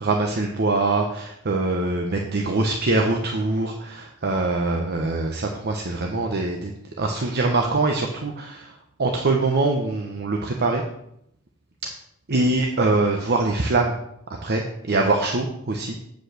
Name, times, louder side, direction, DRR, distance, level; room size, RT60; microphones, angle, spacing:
voice 1, 0.0-6.7 7.0-8.7 9.0-10.8 12.3-13.9 14.3-16.0, right 2 dB, 45° right, 2 dB, 0.9 m, -23 dB
8.2 x 5.2 x 6.7 m, 0.75 s
head